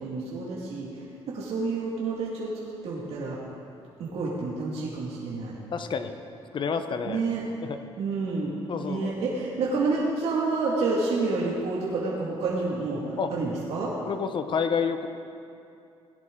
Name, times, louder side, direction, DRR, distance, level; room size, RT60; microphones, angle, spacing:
voice 1, 0.0-2.5 2.8-3.4 4.0-5.6 7.0-7.4 8.0-8.5 8.8-13.0 13.3-13.9, right 3 dB, 70° right, -5 dB, 2.1 m, -29 dB
voice 2, 5.7-6.3 6.5-7.2 7.6-7.8 8.7-9.1 13.2-13.3 14.1-15.1, left 6 dB, 50° left, 8 dB, 0.9 m, -29 dB
17.5 x 10.5 x 3.8 m, 2.6 s
cardioid pair, 95°, 11 cm